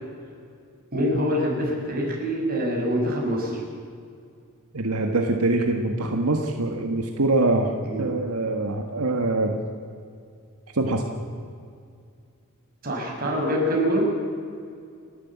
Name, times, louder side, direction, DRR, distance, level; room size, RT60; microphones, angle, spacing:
voice 1, 0.9-3.6 7.9-8.1 12.8-14.1, equal, 45° right, -1 dB, 6.0 m, -25 dB
voice 2, 4.7-7.7 8.0-9.6 10.7-11.0, right 2 dB, 85° right, 3 dB, 1.6 m, -24 dB
29.0 x 11.5 x 8.4 m, 2.3 s
head